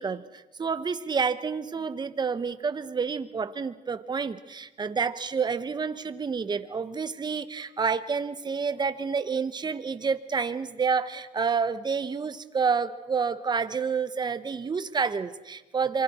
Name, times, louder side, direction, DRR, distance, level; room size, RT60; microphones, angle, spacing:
voice 1, 0.0-16.0, right 5 dB, 25° right, 12 dB, 1.1 m, -29 dB
26.0 x 24.0 x 4.4 m, 1.1 s
cardioid pair, 110°, 17 cm